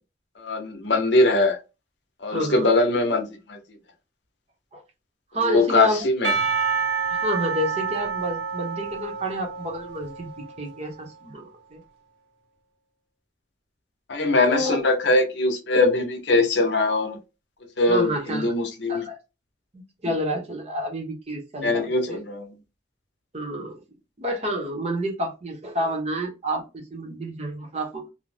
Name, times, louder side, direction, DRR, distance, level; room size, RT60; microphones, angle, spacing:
voice 1, 0.4-1.6 2.2-3.6 5.4-6.3 14.1-17.2 17.8-19.1 21.6-22.5, left 2 dB, 70° left, 0.7 m, -22 dB
voice 2, 2.3-2.7 4.7-4.8 5.3-6.1 7.1-10.3 10.6-11.8 14.5-14.8 17.9-18.5 18.9-19.2 19.7-22.2 23.3-23.8 24.2-28.1, right 1 dB, 35° right, 0.8 m, -29 dB
Percussion / Church bell, 6.2-10.8, right 5 dB, 85° right, 1.0 m, -28 dB
2.6 x 2.0 x 3.2 m
head